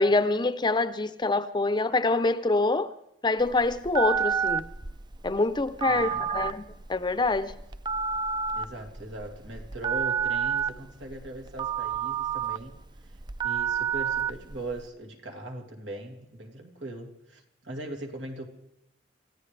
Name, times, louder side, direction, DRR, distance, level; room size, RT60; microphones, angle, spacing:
voice 1, 0.0-2.9 3.2-4.7 5.2-6.6 6.9-7.5, left 3 dB, 25° left, 0.6 m, -25 dB
Telephone, 3.4-14.8, right 7 dB, 25° right, 0.5 m, -30 dB
voice 2, 5.8-6.3 8.5-12.8 13.4-18.5, right 1 dB, 85° right, 2.7 m, -40 dB
29.5 x 14.5 x 3.3 m
head